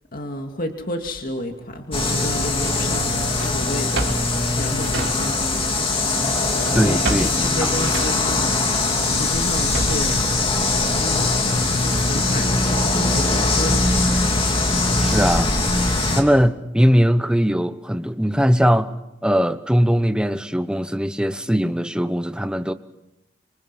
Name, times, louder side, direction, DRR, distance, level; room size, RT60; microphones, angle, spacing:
voice 1, 0.1-3.1 3.4-4.1 4.5-5.6 6.8-8.5 9.0-10.2 11.0-11.3 11.6-13.9, left 1 dB, 45° left, 4 dB, 2.3 m, -31 dB
sound 1, 1.9-16.2, left 2 dB, 30° left, 2.8 m, -21 dB
Drawer open or close, 2.6-5.7 5.9-10.2, right 2 dB, 65° right, 4.9 m, -31 dB
voice 2, 6.7-7.3 7.6-7.7 15.0-15.5 16.1-18.9 19.2-22.7, equal, 5° right, 10 dB, 0.9 m, -20 dB
26.5 x 25.5 x 6.1 m, 0.92 s
head